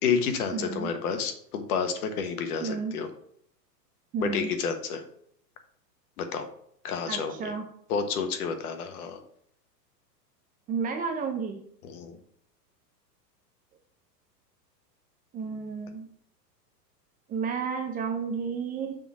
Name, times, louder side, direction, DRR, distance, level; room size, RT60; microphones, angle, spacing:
voice 1, 0.0-3.1 4.2-5.0 6.2-6.5 6.8-7.5 7.9-9.2 11.8-12.2, left 6 dB, 60° left, 7 dB, 1.4 m, -30 dB
voice 2, 0.5-0.9 2.6-3.0 4.1-4.5 7.1-7.6 10.7-11.6 15.3-16.1 17.3-19.0, right 5 dB, 20° right, 3 dB, 0.5 m, -31 dB
7.0 x 3.8 x 6.1 m, 0.68 s
hypercardioid pair, 120°, 50 cm